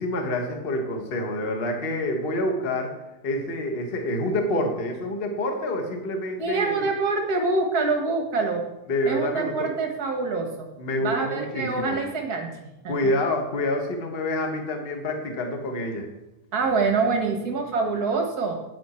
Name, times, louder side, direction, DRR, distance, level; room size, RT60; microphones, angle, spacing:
voice 1, 0.0-2.9 3.2-6.9 8.9-9.7 10.8-12.0 12.9-16.1, left 1 dB, 35° left, 3 dB, 0.9 m, -27 dB
voice 2, 6.4-8.6 9.0-10.7 11.0-13.1 16.5-18.6, right 4 dB, 45° right, 3 dB, 1.4 m, -25 dB
10.0 x 9.0 x 4.4 m, 0.96 s
omnidirectional pair, 3.3 m